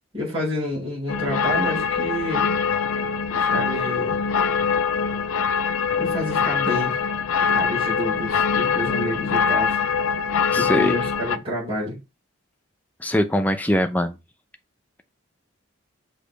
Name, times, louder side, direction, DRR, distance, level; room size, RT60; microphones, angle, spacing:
voice 1, 0.1-2.5 3.3-4.2 6.0-7.0 7.4-9.8 10.5-12.0, left 1 dB, 25° right, 4.0 m, -29 dB
sound 1, 1.1-11.4, left 6 dB, 85° left, 0.5 m, -23 dB
voice 2, 10.5-11.0 13.0-14.2, left 1 dB, 10° left, 0.5 m, -22 dB
6.5 x 3.0 x 5.2 m
head